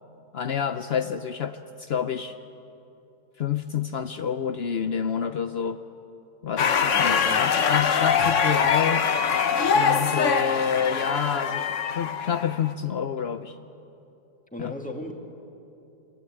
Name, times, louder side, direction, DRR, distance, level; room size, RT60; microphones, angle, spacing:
voice 1, 0.3-2.4 3.4-5.8 6.4-9.1 9.7-13.6 14.6-14.7, left 7 dB, 65° left, 9 dB, 0.6 m, -28 dB
sound 1, 6.6-12.7, left 6 dB, 50° left, 1.1 m, -23 dB
voice 2, 6.9-7.5 14.5-15.1, left 1 dB, 5° left, 2 dB, 2.4 m, -36 dB
25.5 x 22.5 x 9.2 m, 2.9 s
omnidirectional pair, 1.9 m